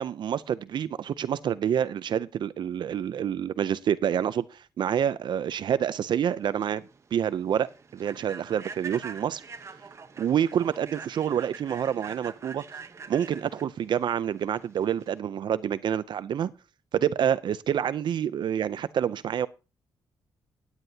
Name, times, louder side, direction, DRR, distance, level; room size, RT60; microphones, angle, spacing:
voice 1, 0.0-6.8 7.1-7.7 7.9-9.4 10.2-12.6 13.1-16.5 16.9-19.5, right 9 dB, 60° right, 0.5 m, -27 dB
Human voice / Train, 6.3-15.2, right 5 dB, 35° right, 0.9 m, -44 dB
17.0 x 9.7 x 2.8 m
wide cardioid pair, 135°, 9 cm